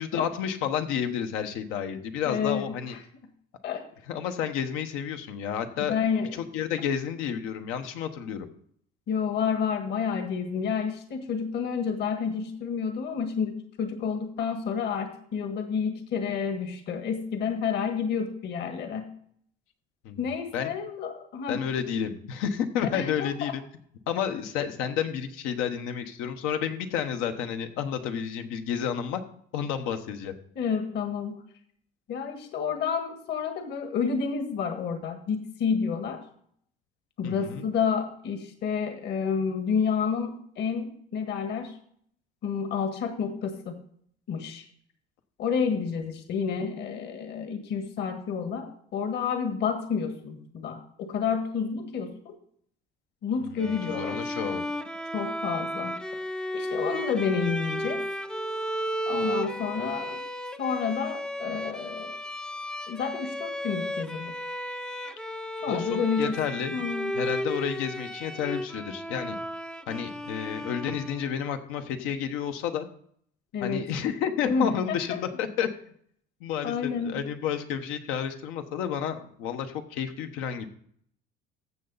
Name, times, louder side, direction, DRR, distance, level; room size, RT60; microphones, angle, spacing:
voice 1, 0.0-2.9 4.1-6.0 6.3-8.5 20.0-20.2 20.5-20.7 21.5-23.6 24.1-29.2 29.5-30.3 37.2-37.7 53.5-54.6 65.7-66.8 67.1-69.4 69.9-72.9 73.6-75.7 76.4-80.7, left 8 dB, 90° left, 7 dB, 1.2 m, -31 dB
voice 2, 2.2-3.0 3.6-3.8 5.9-6.4 9.1-19.1 20.2-21.6 22.8-23.5 30.5-31.4 32.1-36.2 37.2-41.7 42.4-43.8 44.3-44.6 45.4-52.3 53.2-54.6 55.1-56.0 56.5-58.0 59.1-60.2 60.6-62.2 62.9-64.3 65.6-66.4 66.7-67.1 73.5-73.9 74.4-75.2 76.6-77.2, left 6 dB, 55° left, 6 dB, 1.6 m, -30 dB
Bowed string instrument, 53.6-71.4, equal, 5° left, 0.4 m, -34 dB
15.0 x 6.8 x 4.1 m, 0.63 s
cardioid pair, 145°, 21 cm